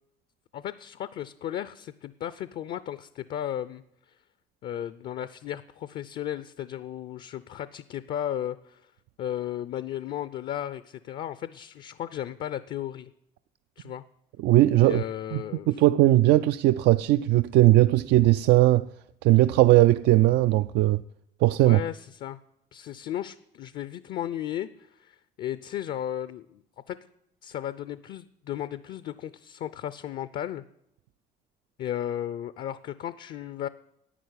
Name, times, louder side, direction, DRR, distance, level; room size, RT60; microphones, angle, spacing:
voice 1, 0.5-3.8 4.6-8.8 9.2-13.1 13.8-14.0 14.8-15.8 21.6-22.4 22.7-27.0 27.4-30.6 31.8-33.7, left 11 dB, 60° left, 0.6 m, -35 dB
voice 2, 14.4-15.0 15.3-15.4 15.7-18.9 19.2-21.0 21.4-21.8, right 16 dB, 80° right, 0.4 m, -19 dB
11.0 x 8.7 x 9.6 m
cardioid pair, 110°, 17 cm